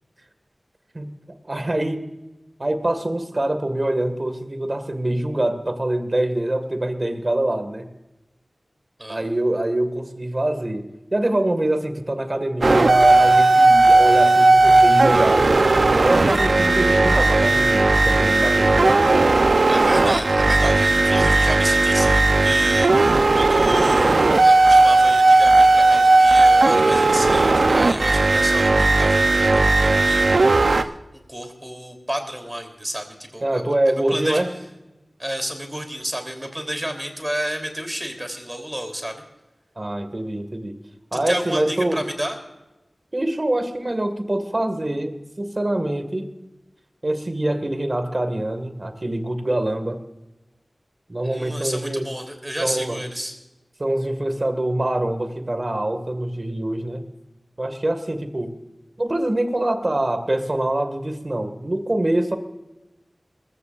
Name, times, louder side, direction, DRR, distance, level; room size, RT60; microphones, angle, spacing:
voice 1, 1.4-2.0 2.6-7.9 9.1-10.9 11.1-15.7 16.0-18.9 33.4-34.5 39.8-40.8 41.1-42.0 43.1-46.3 47.0-50.0 51.1-52.1 52.6-53.0 53.8-57.1 57.6-58.6 59.0-62.4, right 1 dB, 40° right, 8 dB, 1.8 m, -24 dB
sound 1, 12.6-30.8, right 2 dB, 80° right, 0.7 m, -16 dB
voice 2, 19.7-34.4 35.2-39.2 41.3-42.4 51.2-53.3, equal, 15° right, 5 dB, 3.3 m, -31 dB
21.0 x 15.0 x 2.5 m, 1.0 s
wide cardioid pair, 55°, 0 cm